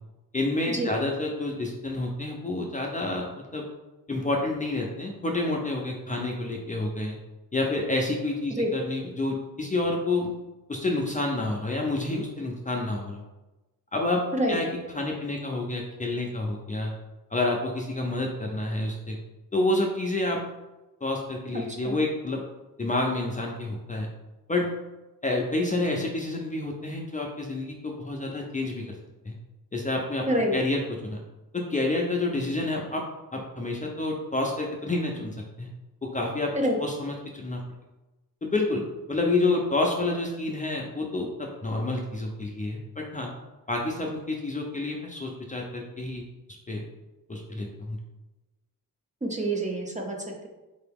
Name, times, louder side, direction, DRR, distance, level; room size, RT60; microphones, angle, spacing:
voice 1, 0.3-3.6 4.1-7.2 7.5-10.3 10.7-13.2 13.9-16.9 17.3-19.2 19.5-20.4 21.0-22.4 22.8-24.1 24.5-24.7 25.2-28.9 29.3-29.4 29.7-31.2 31.5-33.0 33.3-35.7 36.0-36.5 36.8-37.6 38.4-43.3 43.7-46.2 46.7-46.8 47.3-48.0, left 2 dB, 20° left, 0 dB, 0.5 m, -29 dB
voice 2, 30.3-30.6 36.5-36.8 49.2-50.2, right 1 dB, 20° right, 1 dB, 0.7 m, -26 dB
4.4 x 2.9 x 3.5 m, 1.1 s
wide cardioid pair, 105°, 35 cm